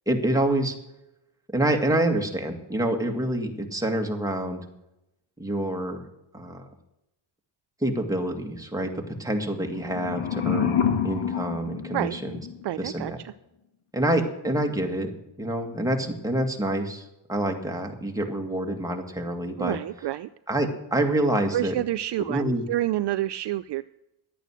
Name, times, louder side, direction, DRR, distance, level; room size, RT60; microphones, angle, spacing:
voice 1, 0.1-0.7 1.5-4.6 5.4-6.1 6.3-6.7 7.8-12.4 12.8-13.2 13.9-15.1 15.4-19.8 20.5-21.7 22.3-22.6, right 1 dB, 5° right, 2 dB, 2.0 m, -27 dB
sound 1, 9.6-12.6, left 8 dB, 80° left, 1.7 m, -28 dB
voice 2, 12.6-13.3 19.6-20.3 21.5-23.8, right 14 dB, 60° right, 13 dB, 0.5 m, -28 dB
11.5 x 9.0 x 6.3 m, 0.89 s
cardioid pair, 85°, 49 cm